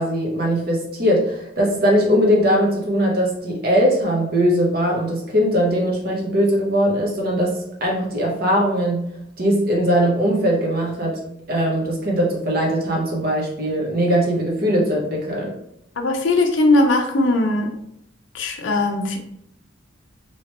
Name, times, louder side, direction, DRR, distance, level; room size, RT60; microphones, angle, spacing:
voice 1, 0.0-9.0 9.4-11.2 11.5-15.5, equal, 50° right, -2 dB, 0.9 m, -20 dB
voice 2, 16.0-17.7 18.3-19.2, left 2 dB, 70° left, 3 dB, 0.6 m, -19 dB
3.1 x 2.9 x 2.9 m, 0.74 s
head